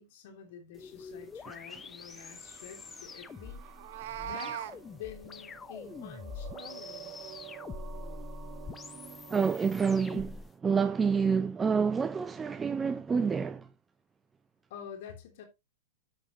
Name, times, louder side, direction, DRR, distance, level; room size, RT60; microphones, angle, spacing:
voice 1, 0.0-3.6 4.2-7.4 14.7-15.4, left 8 dB, 65° left, 3.1 m, -48 dB
sound 1, 0.7-10.5, left 5 dB, 20° left, 0.9 m, -45 dB
sound 2, 1.0-9.5, right 11 dB, 35° right, 1.6 m, -50 dB
Meow, 3.7-4.8, right 11 dB, 65° right, 1.1 m, -38 dB
voice 2, 9.3-13.7, right 5 dB, 15° right, 0.6 m, -28 dB
9.0 x 8.5 x 3.1 m
hypercardioid pair, 115°, 0 cm